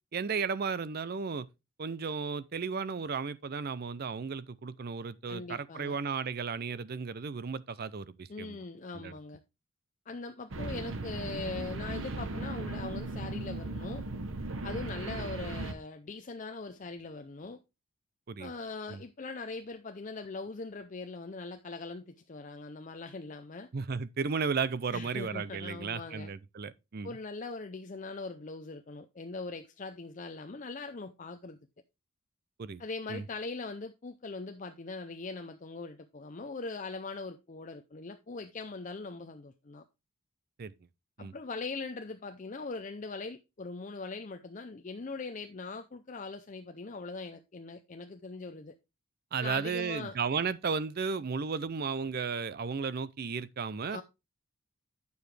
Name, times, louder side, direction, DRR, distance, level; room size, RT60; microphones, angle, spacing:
voice 1, 0.1-1.5 1.8-8.6 8.9-9.1 15.0-15.1 18.3-18.5 18.9-19.0 23.7-27.1 32.6-32.8 33.1-33.2 40.6-40.7 41.2-41.3 49.3-54.0, right 5 dB, 45° right, 0.4 m, -34 dB
voice 2, 5.3-6.0 8.3-9.4 10.1-14.0 14.6-17.6 18.4-23.7 24.9-26.3 27.0-31.6 32.8-39.8 41.2-48.8 49.4-50.2 53.9-54.0, left 3 dB, 35° left, 0.5 m, -41 dB
sound 1, 10.5-15.7, right 2 dB, 60° right, 0.9 m, -37 dB
9.3 x 7.0 x 3.2 m
head